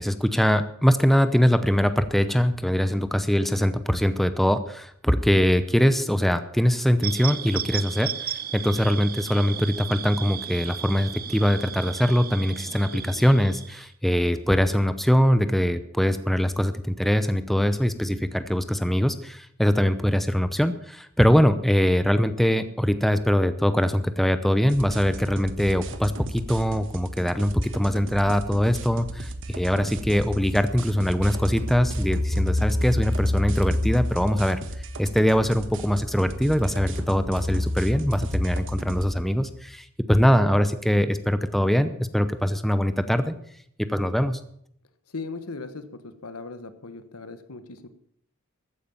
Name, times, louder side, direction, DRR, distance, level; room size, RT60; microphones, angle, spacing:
voice 1, 0.0-34.6 35.0-43.3 43.8-44.4, equal, ahead, 11 dB, 0.7 m, -22 dB
sound 1, 7.0-13.9, right 10 dB, 45° right, 0.7 m, -35 dB
sound 2, 24.7-39.1, right 1 dB, 60° right, 1.3 m, -37 dB
sound 3, 29.8-34.8 36.6-39.6, left 1 dB, 25° right, 1.8 m, -29 dB
voice 2, 45.1-47.9, left 3 dB, 80° left, 11 dB, 1.3 m, -38 dB
14.5 x 9.4 x 7.2 m, 0.69 s
head